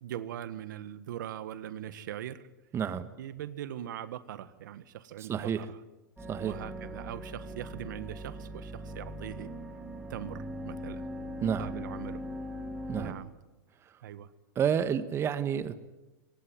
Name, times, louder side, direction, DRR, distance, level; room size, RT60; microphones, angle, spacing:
voice 1, 0.0-2.4 3.2-5.8 6.4-9.5 10.1-11.0 11.4-12.2 13.0-13.3 14.0-14.3, right 11 dB, 75° right, 14 dB, 1.6 m, -41 dB
voice 2, 2.7-3.1 5.2-5.6 6.3-6.6 11.4-11.7 12.9-13.2 14.5-15.7, right 8 dB, 25° right, 12 dB, 1.3 m, -30 dB
sound 1, 6.2-13.1, equal, 5° right, 4.7 m, -40 dB
24.5 x 19.0 x 9.5 m, 1.1 s
hypercardioid pair, 125°, 10 cm